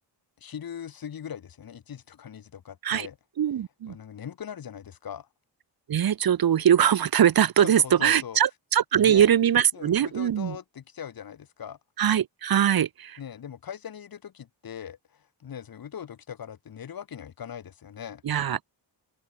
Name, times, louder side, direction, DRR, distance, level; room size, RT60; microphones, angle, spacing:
voice 1, 0.4-3.2 3.9-5.3 7.6-8.4 9.0-9.3 9.7-11.8 13.2-18.2, left 8 dB, 55° left, 2.2 m, -40 dB
voice 2, 3.4-4.0 5.9-10.6 12.0-13.2 18.2-18.7, right 9 dB, 55° right, 1.2 m, -22 dB
wide cardioid pair, 155°, 43 cm